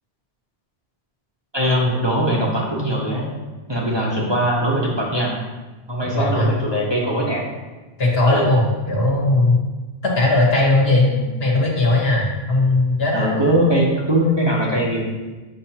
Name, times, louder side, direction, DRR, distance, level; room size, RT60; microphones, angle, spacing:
voice 1, 1.5-3.2 3.7-5.4 5.9-7.4 8.2-8.5 11.1-11.2 13.1-15.0, equal, 25° right, -4 dB, 1.0 m, -21 dB
voice 2, 6.1-6.5 8.0-9.6 10.0-11.1 11.4-13.3, left 2 dB, 65° left, -2 dB, 1.5 m, -18 dB
7.6 x 5.9 x 2.9 m, 1.2 s
omnidirectional pair, 1.1 m